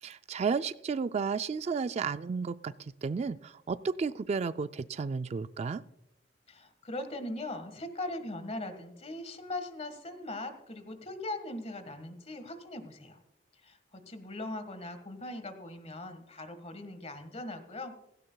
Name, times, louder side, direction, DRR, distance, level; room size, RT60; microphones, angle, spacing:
voice 1, 0.0-5.8, right 5 dB, 35° right, 13 dB, 0.3 m, -33 dB
voice 2, 6.5-13.2 13.6-18.0, left 2 dB, 35° left, 9 dB, 1.6 m, -40 dB
16.5 x 16.5 x 2.3 m, 0.86 s
head